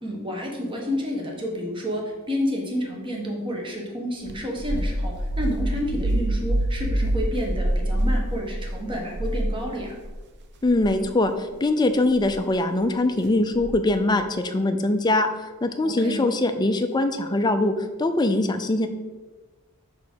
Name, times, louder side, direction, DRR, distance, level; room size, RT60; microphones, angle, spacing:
voice 1, 0.0-10.0 15.8-16.2, equal, 25° right, 0 dB, 1.3 m, -30 dB
sound 1, 4.3-10.1 10.6-10.9 12.1-12.4 13.6-14.0, right 1 dB, 50° right, 0.6 m, -26 dB
voice 2, 10.6-15.3 15.6-18.9, left 2 dB, 20° left, 8 dB, 0.4 m, -22 dB
4.9 x 4.6 x 6.1 m, 1.2 s
head